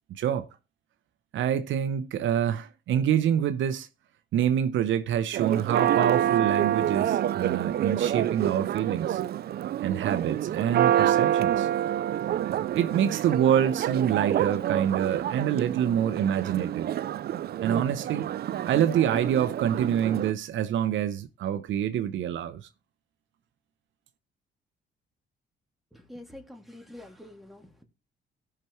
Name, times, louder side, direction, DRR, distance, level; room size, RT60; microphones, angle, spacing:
voice 1, 0.1-0.5 1.3-3.9 4.3-9.2 9.8-11.7 12.7-16.9 17.6-18.3 18.7-22.6, right 9 dB, 75° right, 0.7 m, -26 dB
Church bell, 5.3-20.3, right 11 dB, 55° right, 0.4 m, -27 dB
voice 2, 25.9-27.8, left 1 dB, ahead, 2.4 m, -46 dB
17.0 x 5.9 x 3.1 m
cardioid pair, 90°, 20 cm